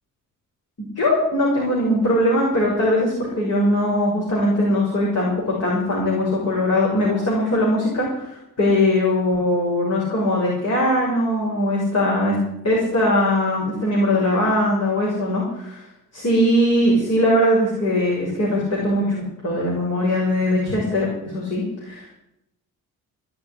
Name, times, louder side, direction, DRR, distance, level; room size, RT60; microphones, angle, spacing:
voice 1, 0.8-12.4 12.6-15.8 16.1-22.2, left 1 dB, 50° left, -4 dB, 6.6 m, -20 dB
17.5 x 7.1 x 9.9 m, 0.82 s
cardioid pair, 95°, 33 cm